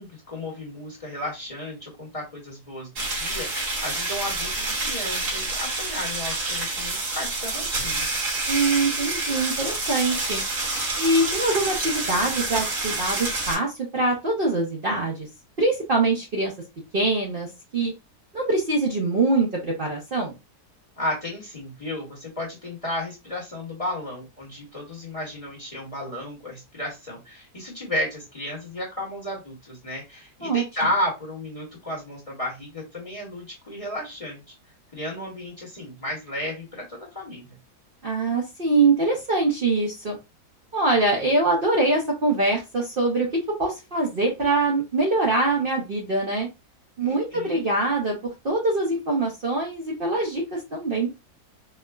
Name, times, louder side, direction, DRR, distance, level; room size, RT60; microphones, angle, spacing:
voice 1, 0.0-8.1 21.0-34.5 34.9-37.6 47.0-47.6, left 1 dB, 25° left, -2 dB, 1.1 m, -33 dB
sound 1, 3.0-13.6, right 2 dB, 80° right, 2.2 m, -28 dB
voice 2, 8.5-10.4 11.0-15.3 15.6-16.5 16.9-17.5 17.7-17.9 18.3-20.3 30.4-30.6 38.0-40.2 40.7-43.3 43.6-46.5 47.0-48.2 48.4-51.1, right 2 dB, 45° right, -3 dB, 0.8 m, -23 dB
4.4 x 2.1 x 2.3 m, 0.24 s
omnidirectional pair, 1.7 m